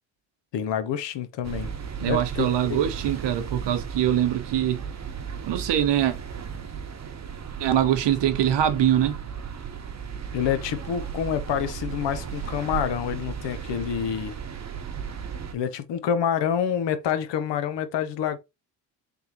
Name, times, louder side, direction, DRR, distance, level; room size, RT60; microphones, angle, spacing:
voice 1, 0.5-1.7 2.0-2.5 10.3-14.4 15.5-18.4, left 8 dB, 65° left, 0.8 m, -27 dB
sound 1, 1.4-15.5, right 7 dB, 35° right, 0.9 m, -35 dB
voice 2, 2.0-4.8 5.5-6.2 7.6-9.2, right 10 dB, 65° right, 0.9 m, -23 dB
3.5 x 3.4 x 2.9 m
supercardioid pair, 60°, 46 cm